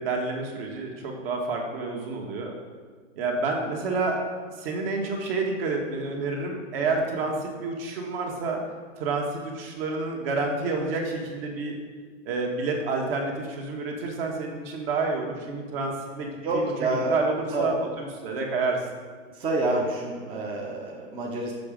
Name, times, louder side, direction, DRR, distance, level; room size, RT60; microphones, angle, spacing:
voice 1, 0.0-2.5 3.2-4.2 4.6-8.6 9.0-11.8 12.2-18.8, right 3 dB, 50° right, 1 dB, 1.5 m, -29 dB
voice 2, 6.8-7.1 15.3-15.4 16.3-17.2 17.5-17.7 19.3-21.5, right 2 dB, 15° right, -3 dB, 0.6 m, -28 dB
6.8 x 5.1 x 5.0 m, 1.6 s
hypercardioid pair, 130°, 38 cm